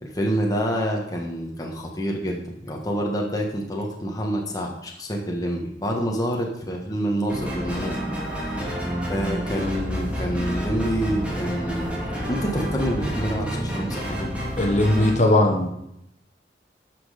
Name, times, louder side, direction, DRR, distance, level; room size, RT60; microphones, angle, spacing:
voice 1, 0.0-8.7 9.1-11.9 12.3-14.3, equal, 20° left, -1 dB, 1.4 m, -27 dB
sound 1, 7.3-15.1, equal, 5° right, 2.8 m, -29 dB
voice 2, 14.6-15.7, left 1 dB, 40° left, 2 dB, 1.4 m, -19 dB
12.0 x 6.2 x 5.0 m, 0.78 s
head